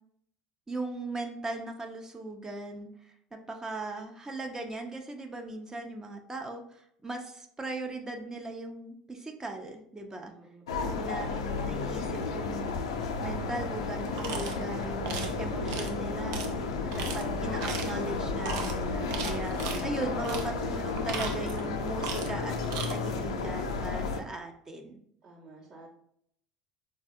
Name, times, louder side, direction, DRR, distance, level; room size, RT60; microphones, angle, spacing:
voice 1, 0.7-10.3 10.8-12.7 13.2-16.5 16.8-25.0, right 2 dB, 20° right, 4 dB, 0.5 m, -39 dB
voice 2, 10.1-11.0 25.2-25.9, right 2 dB, 50° right, -9 dB, 0.9 m, -53 dB
sound 1, 10.7-24.2, left 4 dB, 85° left, 0.4 m, -32 dB
sound 2, 14.2-14.6 15.0-15.3 15.7-15.9 16.3-16.5 16.9-17.2 17.6-18.0 18.4-18.7 19.1-19.8 20.2-20.5 20.9-21.7 22.0-22.4 22.6-22.9, right 6 dB, 75° right, 0.5 m, -37 dB
4.0 x 2.2 x 2.6 m, 0.69 s
hypercardioid pair, 75°, 3 cm